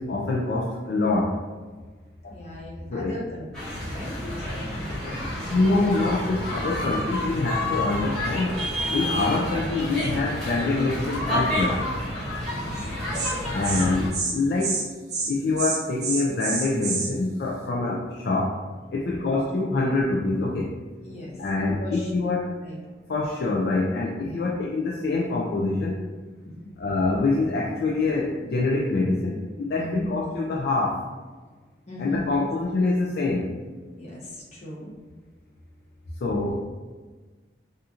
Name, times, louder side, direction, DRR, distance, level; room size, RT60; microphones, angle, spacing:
voice 1, 0.0-1.4 2.2-2.3 2.9-3.1 5.5-8.6 8.9-11.8 13.5-14.9 15.3-18.6 18.9-20.7 21.4-22.5 23.1-26.0 26.8-31.1 32.0-33.5 36.2-36.6, left 3 dB, 60° left, -3 dB, 0.4 m, -25 dB
voice 2, 2.3-5.2 12.5-12.9 19.0-19.3 21.0-21.4 21.8-22.3 22.6-22.8 24.2-24.5 26.6-26.7 29.8-30.1 31.9-32.5 34.0-34.9, left 1 dB, 40° left, -5 dB, 0.9 m, -37 dB
sound 1, 3.5-14.1, left 1 dB, 5° left, 1.1 m, -29 dB
Insect, 12.8-12.9 13.1-13.3 13.6-13.8 14.1-14.3 14.6-14.8 15.1-15.3 15.6-17.1, right 4 dB, 40° right, 0.7 m, -28 dB
4.2 x 2.5 x 2.4 m, 1.4 s
head